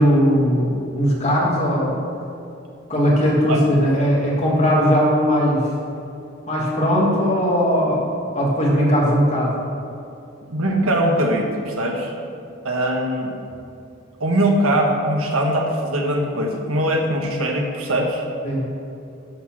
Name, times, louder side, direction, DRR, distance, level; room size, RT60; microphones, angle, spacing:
voice 1, 0.0-2.0 2.9-5.7 6.5-8.0 8.3-9.5 18.4-18.7, equal, 35° left, -4 dB, 1.8 m, -18 dB
voice 2, 10.5-12.1 12.6-13.3 14.2-18.2, right 1 dB, 85° right, 1 dB, 1.2 m, -21 dB
11.0 x 4.2 x 5.9 m, 2.6 s
head